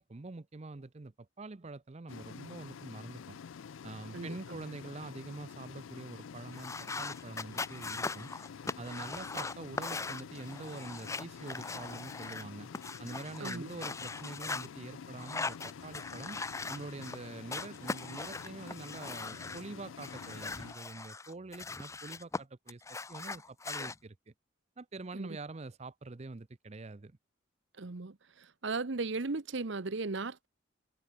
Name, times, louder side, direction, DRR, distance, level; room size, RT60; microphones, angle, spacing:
voice 1, 0.0-3.4 3.8-8.3 8.8-12.7 13.0-24.2 24.8-27.2, right 3 dB, 30° right, 0.5 m, -45 dB
sound 1, 2.1-20.7, left 6 dB, 70° left, 0.4 m, -48 dB
voice 2, 4.1-4.6 13.4-13.7 25.1-25.4 27.8-30.5, right 3 dB, 60° right, 0.9 m, -37 dB
sound 2, 6.5-12.4 12.7-14.7 15.2-17.2 17.5-19.6 20.0-22.4 22.7-24.0, left 3 dB, 15° left, 0.5 m, -40 dB
head